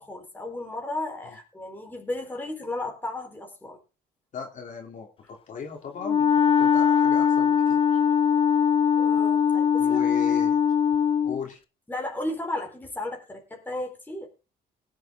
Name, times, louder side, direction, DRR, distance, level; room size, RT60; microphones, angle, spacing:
voice 1, 0.0-3.8 9.0-10.0 11.9-14.3, left 2 dB, 10° left, 4.2 m, -34 dB
voice 2, 4.3-8.0 9.8-10.6 11.2-11.6, left 7 dB, 50° left, 3.2 m, -37 dB
Wind instrument woodwind instrument, 6.0-11.4, left 8 dB, 35° left, 0.6 m, -21 dB
19.0 x 7.9 x 3.8 m
cardioid pair, 110°, 17 cm